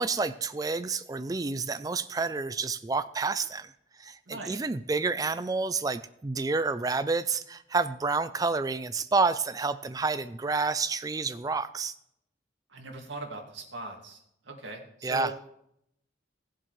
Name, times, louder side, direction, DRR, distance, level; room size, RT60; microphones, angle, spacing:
voice 1, 0.0-3.7 4.0-11.9 15.0-15.3, right 4 dB, 20° right, 13 dB, 0.3 m, -29 dB
voice 2, 4.3-4.6 12.7-14.2 14.4-15.5, right 2 dB, 80° right, 1 dB, 2.2 m, -40 dB
17.5 x 7.5 x 3.2 m, 0.74 s
head